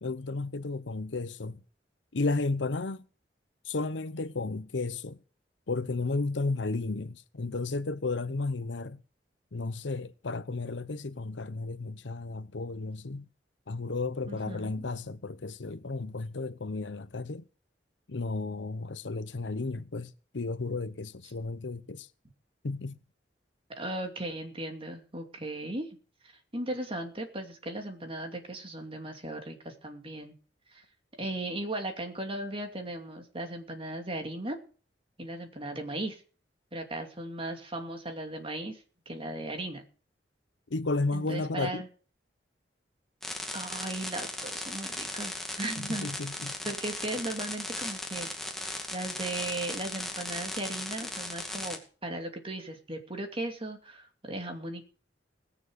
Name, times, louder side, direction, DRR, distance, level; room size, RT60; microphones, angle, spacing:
voice 1, 0.0-1.6 2.1-3.0 3.7-5.2 5.7-9.0 9.5-13.3 13.7-17.4 18.1-22.1 22.6-23.0 40.7-41.8 45.9-46.5, left 3 dB, 90° left, 0.8 m, -33 dB
voice 2, 14.2-14.9 23.8-25.9 26.2-30.3 30.7-30.8 31.2-34.6 35.2-36.2 36.7-39.9 41.1-41.9 43.5-46.1 46.6-48.3 48.6-54.8, right 1 dB, 30° right, 2.7 m, -37 dB
sound 1, 43.2-51.8, left 1 dB, ahead, 2.2 m, -37 dB
19.5 x 7.2 x 6.5 m
head